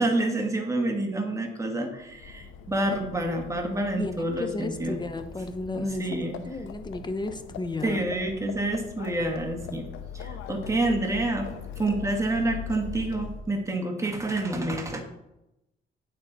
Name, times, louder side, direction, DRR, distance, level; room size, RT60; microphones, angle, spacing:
voice 1, 0.0-5.0 5.7-6.4 7.8-9.9 10.1-11.5 11.8-15.0, right 2 dB, 15° right, 2 dB, 1.8 m, -28 dB
Livestock farm animals working animals, 2.0-13.6, left 7 dB, 90° left, 0.8 m, -41 dB
voice 2, 3.9-8.1 10.9-11.0, left 2 dB, 20° left, 8 dB, 0.9 m, -33 dB
8.8 x 6.7 x 4.2 m, 0.89 s
cardioid pair, 90°, 20 cm